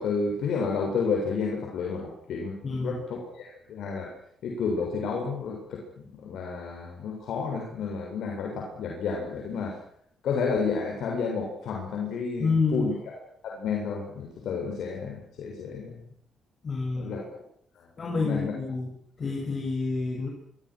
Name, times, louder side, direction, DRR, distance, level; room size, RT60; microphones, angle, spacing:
voice 1, 0.0-4.1 4.4-9.8 10.2-16.0 16.9-17.4 17.8-18.5, left 5 dB, 75° left, 0 dB, 7.5 m, -31 dB
voice 2, 2.6-3.0 12.4-12.9 16.6-17.2 18.0-18.9 19.2-20.3, left 4 dB, 40° left, 0 dB, 8.0 m, -28 dB
26.5 x 25.0 x 6.5 m, 0.65 s
cardioid pair, 90°, 0 cm